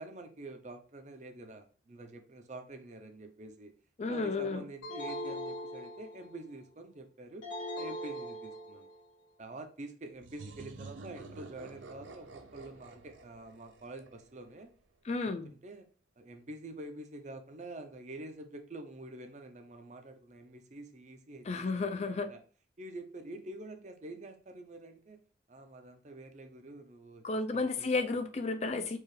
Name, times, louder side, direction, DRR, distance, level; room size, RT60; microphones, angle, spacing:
voice 1, 0.0-3.7 4.1-7.5 7.8-8.9 9.4-14.7 15.1-15.8 16.2-22.4 22.8-25.2 25.5-27.9, right 2 dB, 40° right, 0.5 m, -47 dB
voice 2, 4.0-4.6 15.1-15.5 21.5-22.3 27.2-29.0, left 3 dB, 35° left, 0.4 m, -32 dB
sound 1, 4.8-6.4 7.4-9.0, equal, 80° left, 1.8 m, -40 dB
sound 2, 10.2-14.8, right 3 dB, 90° right, 0.5 m, -50 dB
4.5 x 2.4 x 3.2 m
head